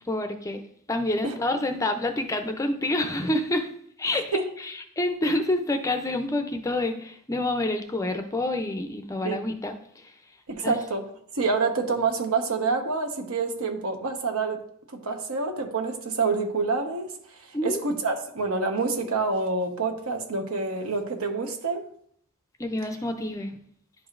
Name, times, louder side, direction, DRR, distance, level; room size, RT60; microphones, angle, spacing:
voice 1, 0.0-0.6 0.9-3.7 4.0-10.1 10.6-10.8 17.5-17.8 22.6-23.5, left 1 dB, 15° left, 6 dB, 0.4 m, -28 dB
voice 2, 4.1-4.4 9.2-9.4 10.5-11.1 11.3-14.6 14.9-21.8, right 4 dB, 75° right, 3 dB, 1.0 m, -27 dB
10.5 x 4.9 x 2.5 m, 0.66 s
head